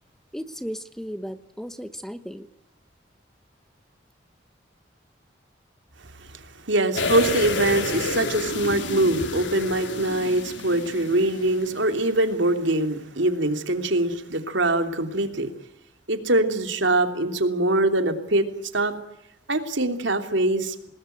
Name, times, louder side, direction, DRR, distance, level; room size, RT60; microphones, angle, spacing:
voice 1, 0.3-2.5, equal, ahead, 11 dB, 0.9 m, -35 dB
voice 2, 6.3-15.5 16.1-18.4 18.7-18.9 19.5-20.9, right 1 dB, 75° right, 7 dB, 3.1 m, -23 dB
sound 1, 7.0-11.8 12.1-12.2, left 2 dB, 75° left, 4.0 m, -30 dB
27.5 x 20.0 x 9.3 m, 0.82 s
head